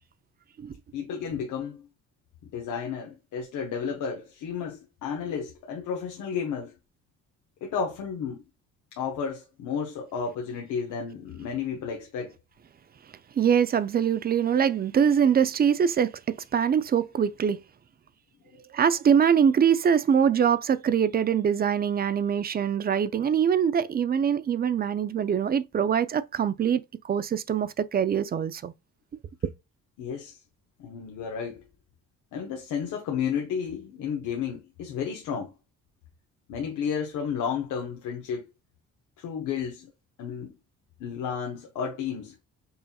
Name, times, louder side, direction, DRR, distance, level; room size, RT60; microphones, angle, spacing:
voice 1, 0.9-1.9 2.5-6.7 7.6-8.4 8.9-12.3 30.0-30.4 30.8-31.6 32.3-35.5 36.5-38.5 39.2-39.9 40.2-40.5 41.0-42.3, left 7 dB, 80° left, 0.9 m, -32 dB
voice 2, 13.4-17.6 18.7-28.7, right 8 dB, 30° right, 0.4 m, -23 dB
5.5 x 2.8 x 2.3 m
cardioid pair, 90°, 30 cm